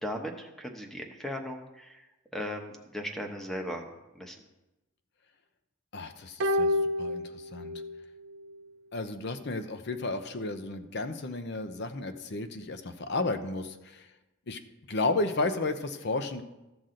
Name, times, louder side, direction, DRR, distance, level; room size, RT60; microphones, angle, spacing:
voice 1, 0.0-2.1 2.3-4.4, equal, ahead, 3 dB, 0.9 m, -37 dB
voice 2, 5.9-7.8 8.9-14.1 14.5-14.6 14.9-16.4, left 2 dB, 50° left, 9 dB, 0.7 m, -33 dB
sound 1, 6.4-8.0 8.3-8.4, left 1 dB, 55° right, 0.6 m, -29 dB
14.5 x 6.0 x 3.8 m, 1.0 s
head